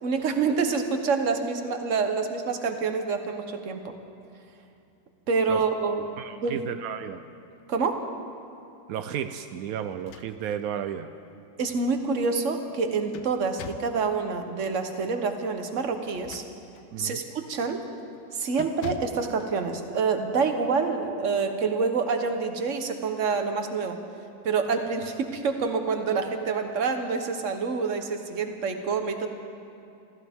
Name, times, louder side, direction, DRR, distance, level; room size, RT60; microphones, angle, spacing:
voice 1, 0.0-3.8 5.3-6.0 6.4-6.6 7.7-8.1 11.6-16.4 17.0-17.8 18.4-24.0 24.4-29.3, right 5 dB, 45° right, 6 dB, 1.3 m, -27 dB
voice 2, 6.2-7.2 8.9-11.1 16.9-17.2, right 9 dB, 75° right, 9 dB, 0.8 m, -33 dB
sound 1, 9.9-10.7 11.1-11.2 12.7-14.0 16.0-16.9 17.4-17.7 18.0-18.2 18.6-19.3, left 10 dB, 75° left, 1.2 m, -43 dB
27.0 x 14.5 x 3.6 m, 2.7 s
omnidirectional pair, 2.1 m